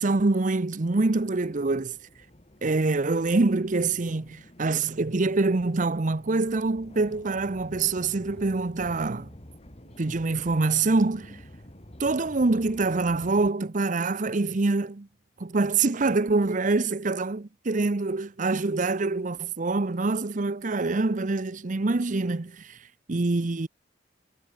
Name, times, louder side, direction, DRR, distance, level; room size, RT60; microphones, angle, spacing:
voice 1, 0.0-2.0 2.6-9.3 10.0-11.4 12.0-15.1 15.4-23.7, right 3 dB, 45° right, 0.7 m, -25 dB
sound 1, 0.8-13.5, left 1 dB, 35° left, 2.9 m, -49 dB
head